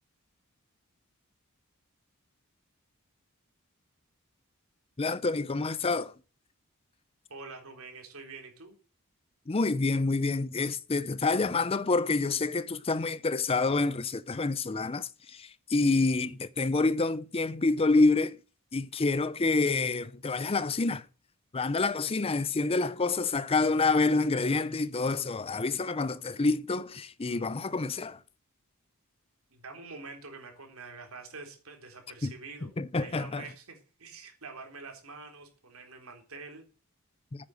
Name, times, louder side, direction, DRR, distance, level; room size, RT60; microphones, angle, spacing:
voice 1, 5.0-6.1 9.5-18.4 18.7-21.1 21.5-28.2 32.2-32.3 32.8-33.5, left 3 dB, 25° left, 0.6 m, -27 dB
voice 2, 7.3-8.7 29.5-32.7 33.0-36.7, right 4 dB, 70° right, 3.9 m, -46 dB
9.7 x 8.7 x 7.9 m
head